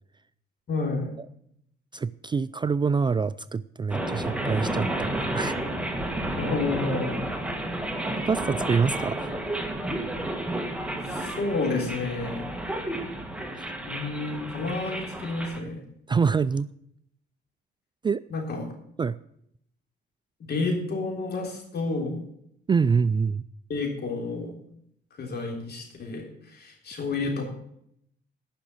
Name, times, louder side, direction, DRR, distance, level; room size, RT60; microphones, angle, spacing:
voice 1, 0.7-1.1 6.4-7.3 11.0-12.5 13.9-15.8 18.3-18.7 20.4-22.2 23.7-24.5 25.2-26.3 26.5-27.4, left 3 dB, 55° left, 1 dB, 3.5 m, -30 dB
voice 2, 1.9-5.5 8.2-9.2 13.6-13.7 16.1-16.7 18.0-18.2 19.0-19.2 22.7-23.4, right 5 dB, 25° right, 16 dB, 0.3 m, -25 dB
sound 1, 3.9-15.6, right 1 dB, 5° right, 1.9 m, -31 dB
10.0 x 6.1 x 8.7 m, 0.72 s
cardioid pair, 90°, 20 cm